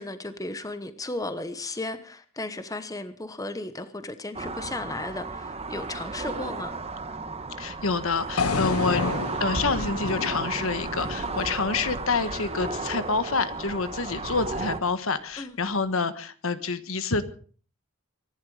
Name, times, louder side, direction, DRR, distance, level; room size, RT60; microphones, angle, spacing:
voice 1, 0.0-6.7 15.4-15.6, left 2 dB, 15° left, 1.1 m, -35 dB
sound 1, 4.3-14.8, right 3 dB, 30° right, 1.5 m, -34 dB
voice 2, 7.6-9.0 9.4-17.2, left 4 dB, 70° left, 1.4 m, -27 dB
sound 2, 8.4-12.5, left 4 dB, 90° left, 1.0 m, -31 dB
24.5 x 11.0 x 5.0 m
head